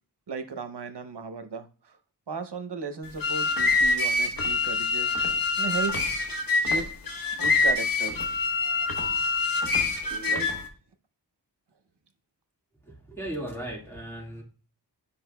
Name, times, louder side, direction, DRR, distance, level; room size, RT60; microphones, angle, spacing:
voice 1, 0.3-2.0 2.3-5.2 5.6-6.0 6.6-6.9 7.3-8.2 10.3-10.5, right 4 dB, 80° right, 0.8 m, -35 dB
sound 1, 3.0-10.7, left 3 dB, 55° left, 1.3 m, -25 dB
voice 2, 12.8-14.4, right 1 dB, 5° left, 1.9 m, -37 dB
9.9 x 5.1 x 2.2 m
wide cardioid pair, 50°, 41 cm